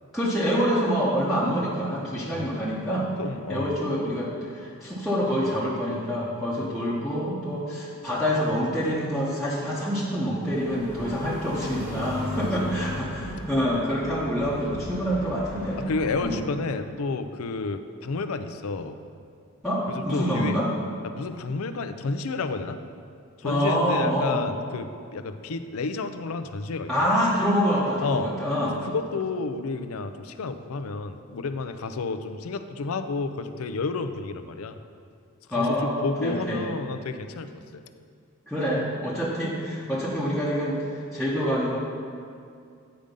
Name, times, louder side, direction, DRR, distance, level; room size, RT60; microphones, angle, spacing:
voice 1, 0.1-3.1 3.5-15.8 16.2-16.4 19.6-20.7 23.4-24.4 26.9-28.8 35.5-36.6 38.5-41.8, equal, ahead, -10 dB, 1.0 m, -26 dB
voice 2, 3.2-3.8 12.4-12.7 15.9-19.0 19.9-20.6 21.0-22.8 23.4-27.1 28.0-28.3 28.7-34.8 35.5-37.8, left 3 dB, 75° left, 9 dB, 0.5 m, -31 dB
sound 1, 10.4-16.2, left 1 dB, 80° right, 2.2 m, -35 dB
8.8 x 5.1 x 5.3 m, 2.3 s
head